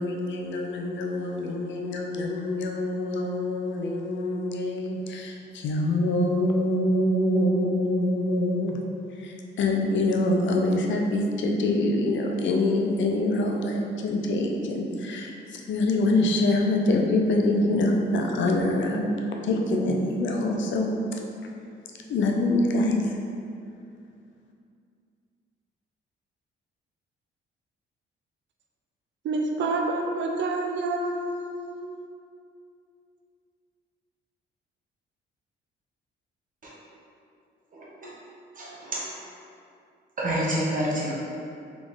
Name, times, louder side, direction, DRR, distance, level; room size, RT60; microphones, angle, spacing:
voice 1, 0.0-8.8 9.2-15.3 15.7-19.1 19.4-20.9 22.1-23.1, left 2 dB, 70° left, 1 dB, 0.6 m, -25 dB
voice 2, 29.2-32.0, right 2 dB, 65° right, 2 dB, 0.5 m, -28 dB
voice 3, 37.7-38.1 38.6-39.1 40.2-41.1, right 1 dB, 45° right, -5 dB, 1.2 m, -28 dB
3.6 x 3.0 x 3.9 m, 2.4 s
cardioid pair, 90°, 20 cm